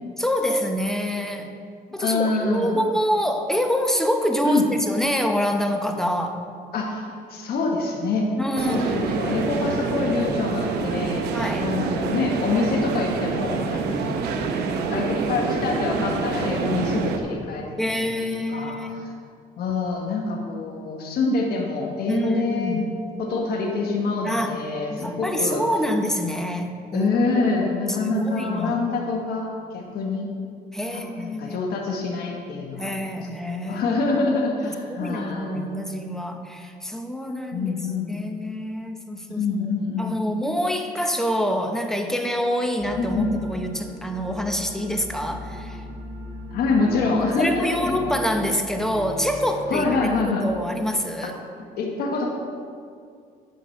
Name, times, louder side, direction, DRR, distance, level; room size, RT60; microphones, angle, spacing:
voice 1, 0.2-1.5 1.9-6.4 8.4-9.3 11.3-11.7 17.8-19.2 22.1-22.9 24.2-24.6 24.9-27.1 27.5-27.7 28.0-28.8 30.7-31.6 32.8-33.8 34.6-37.7 38.1-39.4 40.0-45.8 47.0-51.4, equal, 5° left, 4 dB, 0.8 m, -26 dB
voice 2, 2.0-2.8 4.4-4.7 6.7-8.3 8.6-14.1 14.9-17.6 17.9-19.1 19.6-22.9 23.2-24.9 25.2-25.6 26.9-29.5 29.7-30.3 30.9-33.1 33.6-35.7 37.5-38.1 39.4-40.2 43.0-43.4 46.5-47.9 49.7-50.5 51.8-52.3, left 3 dB, 65° left, 0 dB, 1.4 m, -26 dB
sound 1, 8.6-17.2, right 5 dB, 75° right, 0.9 m, -26 dB
sound 2, 42.8-50.2, right 1 dB, 45° right, 1.4 m, -37 dB
9.4 x 5.1 x 6.4 m, 2.2 s
cardioid pair, 110°, 17 cm